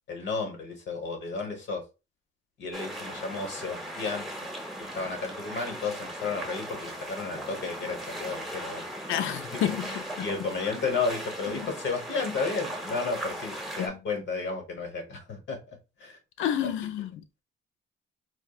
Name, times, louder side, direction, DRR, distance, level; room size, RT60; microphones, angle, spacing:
voice 1, 0.1-1.8 2.6-4.5 4.9-16.2 16.6-16.7, left 4 dB, 65° left, 1.3 m, -33 dB
sound 1, 2.7-13.9, right 1 dB, ahead, 1.0 m, -38 dB
voice 2, 9.1-10.3 13.8-14.0 16.4-17.4, left 10 dB, 80° left, 0.4 m, -30 dB
4.5 x 2.0 x 2.4 m
cardioid pair, 90°, 20 cm